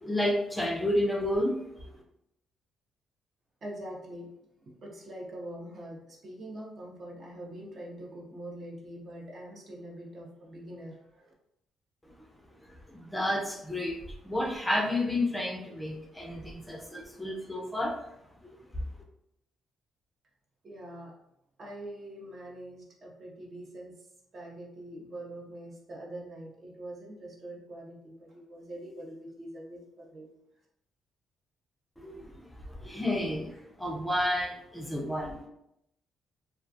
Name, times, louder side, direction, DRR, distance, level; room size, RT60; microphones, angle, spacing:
voice 1, 0.0-1.6 12.7-14.0 14.2-17.9 18.4-18.5 32.0-35.4, left 1 dB, 10° left, -1 dB, 0.4 m, -31 dB
voice 2, 3.6-11.3 20.6-21.1 21.6-24.1 24.3-30.3, right 1 dB, 50° right, -1 dB, 0.7 m, -44 dB
2.3 x 2.2 x 2.6 m, 0.80 s
cardioid pair, 90°, 0 cm